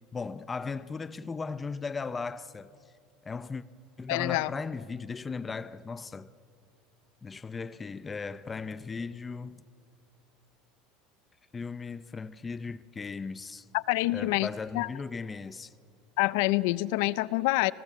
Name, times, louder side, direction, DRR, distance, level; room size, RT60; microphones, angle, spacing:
voice 1, 0.1-2.7 3.2-3.6 4.0-6.3 7.2-9.6 11.5-13.7 14.1-15.7, left 4 dB, 15° left, 0.5 m, -37 dB
voice 2, 4.1-4.5 13.7-14.5 14.7-14.9 16.2-17.7, left 20 dB, 70° left, 0.5 m, -26 dB
30.0 x 20.0 x 7.4 m
cardioid pair, 155°, 0 cm